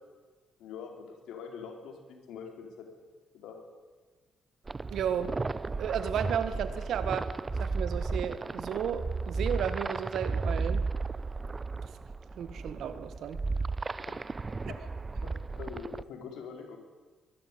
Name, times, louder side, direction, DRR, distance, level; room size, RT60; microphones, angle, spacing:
voice 1, 0.6-2.9 3.3-3.6 5.7-5.8 14.1-14.2 14.7-14.8 15.2-16.8, left 6 dB, 85° left, 3 dB, 4.0 m, -44 dB
sound 1, 4.7-16.0, right 3 dB, 25° right, 0.6 m, -34 dB
voice 2, 4.9-5.4 5.8-7.3 7.6-10.8 12.3-13.4, right 8 dB, 70° right, 11 dB, 1.7 m, -33 dB
22.0 x 12.0 x 9.8 m, 1.4 s
cardioid pair, 90°, 0 cm